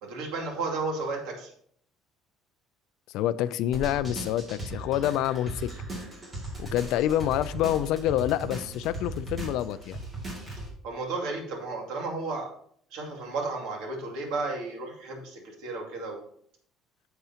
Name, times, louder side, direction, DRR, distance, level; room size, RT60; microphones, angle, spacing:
voice 1, 0.0-1.5 10.8-12.5 12.9-16.2, right 3 dB, 85° right, 2.4 m, -33 dB
voice 2, 3.1-5.7 6.6-10.0, left 12 dB, 70° left, 0.3 m, -27 dB
sound 1, 3.7-10.7, right 2 dB, 20° right, 2.3 m, -38 dB
10.5 x 6.7 x 2.8 m
cardioid pair, 170°, 0 cm